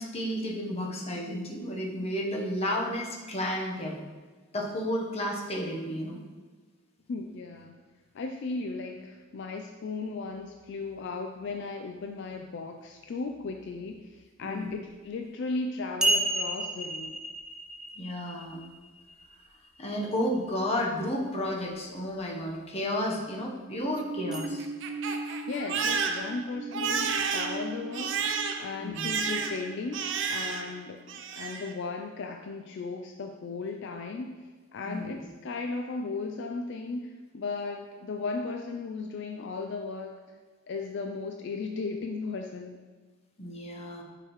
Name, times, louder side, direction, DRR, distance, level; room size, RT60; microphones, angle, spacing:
voice 1, 0.0-4.0 4.5-6.2 14.4-14.7 18.0-18.7 19.8-24.7 28.8-29.1 34.8-35.1 43.4-44.0, equal, 30° left, -1 dB, 0.9 m, -32 dB
voice 2, 7.1-7.7 8.1-17.2 25.5-28.2 28.6-34.4 34.7-40.2 40.7-42.8, left 3 dB, 60° left, 4 dB, 0.3 m, -36 dB
sound 1, 15.1-15.2 16.0-19.7 24.3-24.5, right 2 dB, 5° right, 0.5 m, -31 dB
Crying sobbing, 23.8-30.8 31.1-31.7, right 5 dB, 60° right, 0.5 m, -32 dB
6.4 x 4.8 x 3.0 m, 1.4 s
head